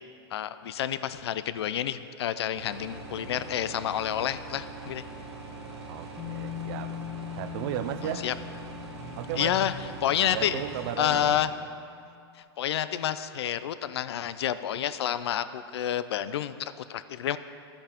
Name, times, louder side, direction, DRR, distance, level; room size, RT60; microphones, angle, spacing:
voice 1, 0.3-5.0 8.2-8.3 9.4-9.7 10.0-10.6 11.0-11.5 12.6-17.4, left 10 dB, 80° left, 13 dB, 0.4 m, -29 dB
sound 1, 2.5-11.4, right 3 dB, 85° right, 1.4 m, -42 dB
voice 2, 5.9-7.0 7.4-8.3 9.2-9.6 10.3-11.4, right 11 dB, 55° right, 12 dB, 0.5 m, -35 dB
Bass guitar, 6.2-12.2, left 13 dB, 25° left, 1.1 m, -42 dB
11.5 x 8.6 x 2.9 m, 2.5 s
hypercardioid pair, 125°, 14 cm